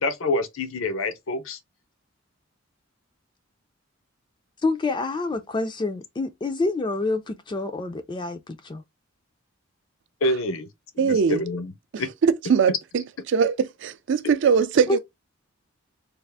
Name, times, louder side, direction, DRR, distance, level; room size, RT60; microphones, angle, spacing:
voice 1, 0.0-1.6 10.2-10.7 11.0-11.7 12.0-12.1, left 2 dB, 75° left, 0.6 m, -26 dB
voice 2, 4.6-8.8 14.9-15.0, left 3 dB, 20° left, 0.4 m, -27 dB
voice 3, 11.0-11.4 11.9-15.0, right 6 dB, 60° right, 0.4 m, -22 dB
3.4 x 2.4 x 3.4 m
head